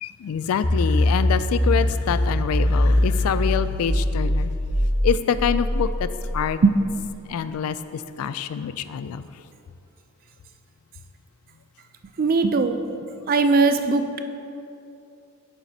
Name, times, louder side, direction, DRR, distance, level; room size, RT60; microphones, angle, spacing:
voice 1, 0.0-4.5 5.0-6.1 6.3-6.6 7.3-9.2, left 7 dB, 85° left, 13 dB, 0.3 m, -26 dB
sound 1, 0.6-6.9, left 1 dB, 20° left, 0.5 m, -22 dB
voice 2, 12.2-12.8 13.3-14.2, right 4 dB, 40° right, 8 dB, 0.4 m, -19 dB
9.2 x 7.1 x 2.8 m, 2.7 s
head